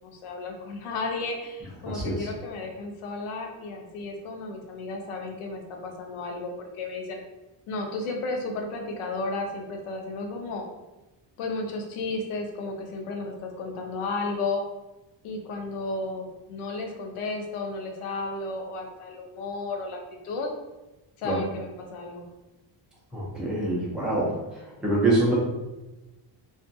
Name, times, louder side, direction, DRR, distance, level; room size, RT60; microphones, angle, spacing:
voice 1, 0.0-7.2 7.7-10.7 11.4-14.6 15.2-20.0 20.2-20.5 21.2-22.3, left 3 dB, 85° left, 2 dB, 0.7 m, -33 dB
voice 2, 1.9-2.3 21.2-21.4 23.1-24.3 24.8-25.3, right 2 dB, ahead, -5 dB, 0.3 m, -25 dB
2.6 x 2.4 x 2.3 m, 1.1 s
cardioid pair, 170°, 49 cm